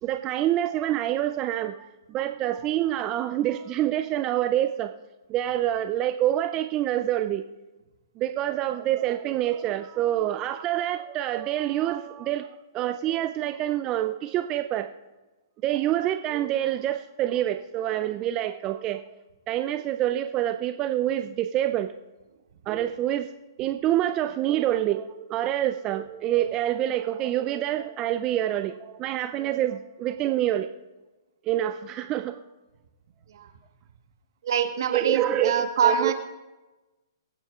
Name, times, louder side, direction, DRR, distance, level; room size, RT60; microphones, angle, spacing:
voice 1, 0.0-4.9 5.3-7.4 8.2-12.5 12.7-14.9 15.6-19.0 19.5-21.9 22.7-23.3 23.6-30.7 31.4-32.4 34.9-36.1, right 12 dB, 25° right, 8 dB, 0.4 m, -26 dB
voice 2, 34.4-36.1, right 7 dB, 65° right, 7 dB, 1.4 m, -24 dB
23.5 x 9.2 x 2.4 m, 1.1 s
hypercardioid pair, 135°, 2 cm